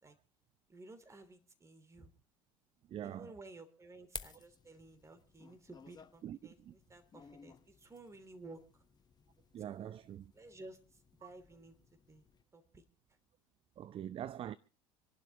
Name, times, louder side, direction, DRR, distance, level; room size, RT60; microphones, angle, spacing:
voice 1, 0.7-2.1 3.0-8.6 9.6-10.0 10.3-10.8 11.2-11.7 12.1-12.2 12.5-12.8, right 2 dB, 15° right, 3.1 m, -54 dB
voice 2, 2.9-3.3 6.2-6.7 9.5-10.3 13.8-14.6, right 10 dB, 35° right, 0.6 m, -44 dB
sound 1, 4.1-12.4, left 6 dB, 25° left, 1.2 m, -55 dB
27.0 x 11.5 x 3.0 m
figure-of-eight pair, 70°, 17 cm